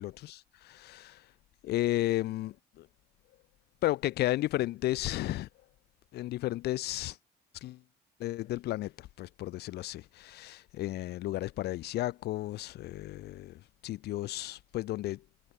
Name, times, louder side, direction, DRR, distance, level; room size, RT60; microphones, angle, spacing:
voice 1, 0.0-1.2 1.6-2.9 3.8-5.5 6.1-7.2 7.6-7.8 8.2-15.2, left 16 dB, 75° left, 1.3 m, -33 dB
cardioid pair, 110°, 17 cm